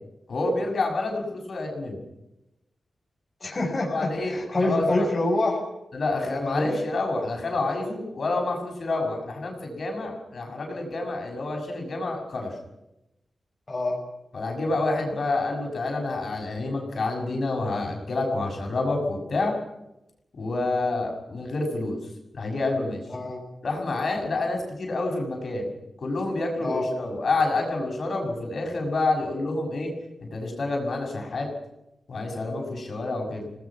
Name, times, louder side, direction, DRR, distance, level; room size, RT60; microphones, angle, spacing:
voice 1, 0.3-2.0 3.8-5.1 5.9-12.5 14.3-19.5 20.4-22.0 22.3-23.0 23.6-25.7 26.0-29.9 30.3-31.5 32.1-33.6, left 2 dB, 50° left, 1 dB, 6.3 m, -28 dB
voice 2, 3.4-5.6 6.2-6.7 13.7-14.0 23.1-23.4 26.6-26.9, left 2 dB, 25° left, -1 dB, 5.9 m, -26 dB
29.5 x 19.0 x 6.0 m, 0.91 s
wide cardioid pair, 165°, 0 cm